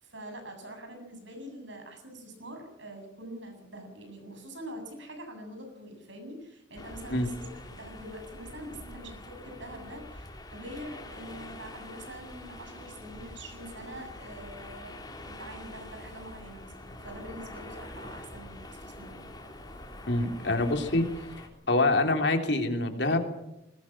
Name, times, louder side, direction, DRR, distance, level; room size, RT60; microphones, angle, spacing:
voice 1, 0.0-19.3, right 1 dB, 70° right, 5 dB, 7.6 m, -44 dB
sound 1, 6.7-21.5, left 1 dB, 20° left, 3.4 m, -45 dB
voice 2, 20.1-21.1 21.7-23.2, left 2 dB, 60° left, 5 dB, 3.3 m, -25 dB
21.0 x 20.5 x 7.4 m, 0.86 s
head